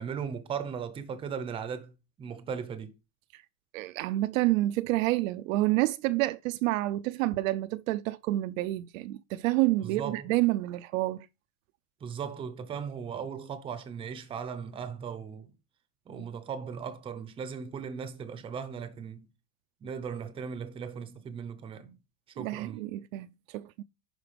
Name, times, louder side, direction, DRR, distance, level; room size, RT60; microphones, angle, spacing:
voice 1, 0.0-1.9 2.2-2.9 9.8-10.3 12.0-15.5 16.1-19.3 19.8-22.0 22.4-22.8, right 7 dB, 10° right, 0.6 m, -37 dB
voice 2, 3.7-11.3 22.4-23.8, right 18 dB, 55° right, 0.5 m, -28 dB
11.0 x 4.4 x 5.0 m
supercardioid pair, 170°, 48 cm